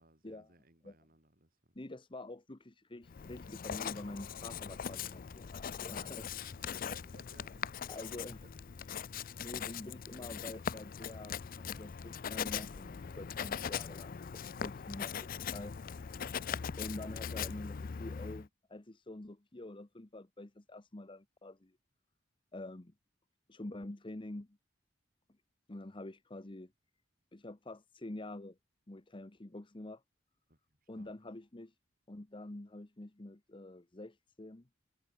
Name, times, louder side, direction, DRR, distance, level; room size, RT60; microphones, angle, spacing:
voice 1, 0.0-1.8 6.0-6.3 6.6-8.5 8.8-9.0 30.5-31.1, right 1 dB, 50° right, 7.7 m, -63 dB
voice 2, 1.7-6.3 7.9-8.4 9.4-14.2 14.6-15.8 16.8-21.7 22.5-22.9 23.5-24.6 25.7-26.7 27.3-28.6 28.9-30.0 30.9-31.7 32.1-34.7, left 1 dB, 25° left, 0.9 m, -47 dB
Writing, 3.1-18.5, left 7 dB, 45° left, 0.5 m, -41 dB
head